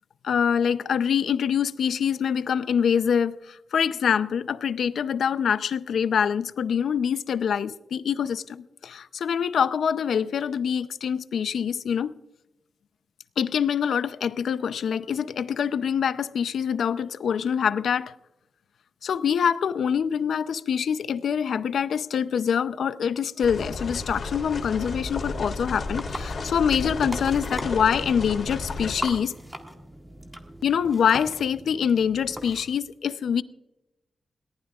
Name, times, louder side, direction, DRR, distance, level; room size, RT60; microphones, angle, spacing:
voice 1, 0.2-12.1 13.4-18.1 19.0-29.3 30.6-33.4, left 7 dB, 90° left, 0.6 m, -25 dB
sound 1, 23.4-29.1, left 3 dB, 55° left, 3.3 m, -33 dB
sound 2, 25.6-32.7, equal, 10° right, 1.7 m, -40 dB
21.0 x 18.5 x 2.4 m
wide cardioid pair, 150°, 0 cm